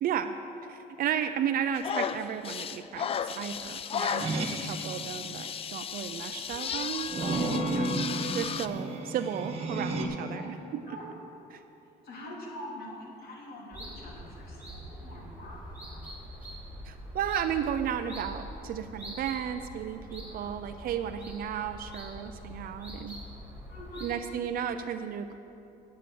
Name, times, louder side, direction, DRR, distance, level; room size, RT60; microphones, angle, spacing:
voice 1, 0.0-0.4 0.6-8.0 8.3-11.0 11.5-11.6 16.8-23.2 24.0-25.3, right 9 dB, 60° right, 9 dB, 0.5 m, -34 dB
sound 1, 1.8-8.7, left 7 dB, 35° left, 0.4 m, -34 dB
sound 2, 4.2-4.8 7.1-10.0, right 2 dB, 35° right, 1.5 m, -32 dB
voice 2, 12.0-16.0 20.2-20.5 23.7-24.1, left 1 dB, 65° left, -3 dB, 3.2 m, -45 dB
sound 3, 13.7-24.2, equal, 10° right, 3.1 m, -44 dB
8.9 x 8.3 x 7.7 m, 2.8 s
cardioid pair, 110°, 17 cm